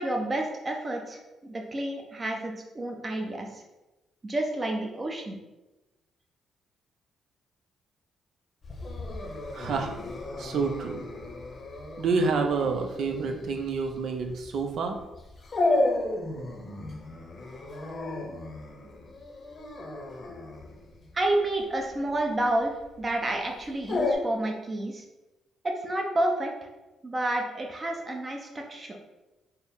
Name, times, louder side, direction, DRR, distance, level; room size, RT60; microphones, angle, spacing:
voice 1, 0.0-3.5 4.2-5.4 21.1-22.7 23.0-25.0 25.6-26.5 27.0-29.0, right 1 dB, 30° right, 2 dB, 0.7 m, -29 dB
Dog, 8.6-24.2, left 2 dB, 40° left, 0.7 m, -33 dB
voice 2, 9.5-9.9 10.4-11.0 12.0-15.0, right 4 dB, 65° right, 5 dB, 0.5 m, -28 dB
4.3 x 2.0 x 3.5 m, 1.1 s
cardioid pair, 90°, 0 cm